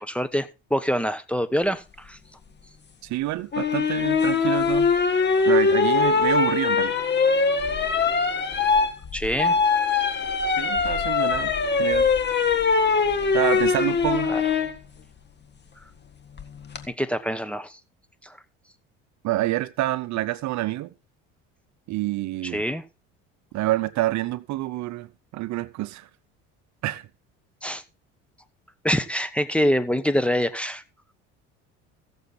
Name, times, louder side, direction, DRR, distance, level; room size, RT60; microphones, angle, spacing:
voice 1, 0.0-2.2 9.1-9.6 14.3-14.4 16.9-17.8 18.2-18.3 22.4-22.8 27.6-27.8 28.8-30.8, equal, 5° left, 1.0 m, -25 dB
voice 2, 3.0-4.9 5.4-6.9 10.6-11.5 11.8-12.1 13.3-14.3 19.2-20.9 21.9-22.6 23.5-26.1 26.8-27.1, right 16 dB, 55° right, 0.8 m, -27 dB
sound 1, 3.5-14.7 16.4-16.8, left 5 dB, 30° left, 1.7 m, -22 dB
16.0 x 7.1 x 4.0 m
supercardioid pair, 80°, 33 cm